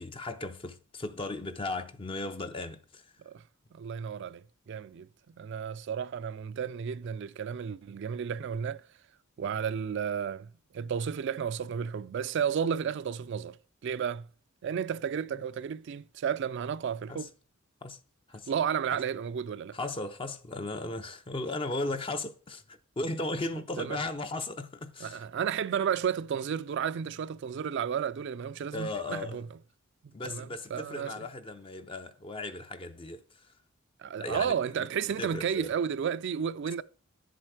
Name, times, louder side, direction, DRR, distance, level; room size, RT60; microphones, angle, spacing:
voice 1, 0.0-3.1 17.1-17.3 17.8-18.0 18.3-18.5 19.7-25.3 28.7-29.4 30.1-33.5 34.2-34.9 35.2-35.7, left 2 dB, 25° left, 0.5 m, -36 dB
voice 2, 3.7-5.1 5.4-8.9 9.4-10.5 10.7-13.6 13.8-14.3 14.6-17.3 18.5-19.8 23.8-24.0 25.0-29.4 30.2-31.3 34.0-36.8, right 7 dB, 55° right, 0.3 m, -32 dB
10.0 x 7.6 x 4.8 m
head